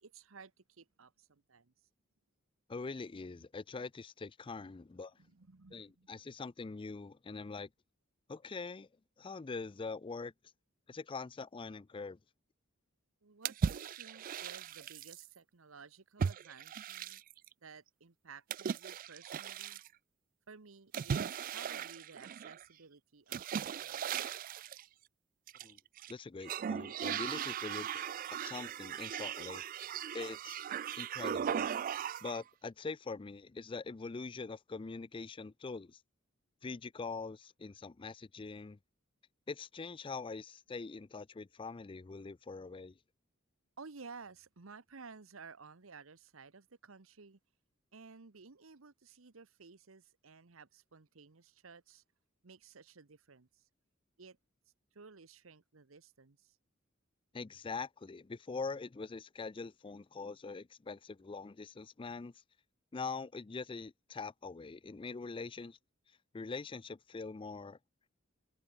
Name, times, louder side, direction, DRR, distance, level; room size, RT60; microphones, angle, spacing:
voice 1, 0.0-1.7 5.2-6.1 13.2-17.2 17.6-19.8 20.5-24.3 43.8-47.4 47.9-52.0 52.4-53.7 54.2-54.4 54.9-56.6, right 5 dB, 90° right, 1.1 m, -55 dB
voice 2, 2.7-5.2 5.7-7.7 8.3-8.9 9.2-10.3 10.9-12.2 25.6-25.8 26.1-28.0 28.4-30.6 30.9-31.7 32.2-36.0 36.6-38.8 39.5-43.0 57.3-62.3 62.9-65.8 66.3-67.8, left 4 dB, 25° left, 0.4 m, -43 dB
sound 1, 13.4-15.3 16.2-17.5 18.5-19.9 20.9-22.6 23.3-24.8 25.5-26.1 26.4-32.4, right 7 dB, 45° right, 0.3 m, -38 dB
head